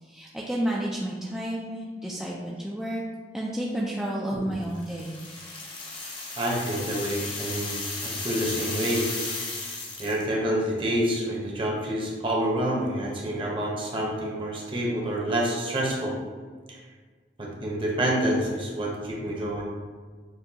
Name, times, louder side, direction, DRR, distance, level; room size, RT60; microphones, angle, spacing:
voice 1, 0.0-3.0 3.3-5.2, right 1 dB, 5° right, -5 dB, 0.3 m, -31 dB
sound 1, 4.7-10.3, left 3 dB, 30° left, 0.7 m, -35 dB
voice 2, 6.4-9.1 10.0-16.2 16.7-16.8 17.4-19.6, right 1 dB, 30° right, -2 dB, 0.8 m, -28 dB
6.7 x 2.3 x 2.8 m, 1.5 s
head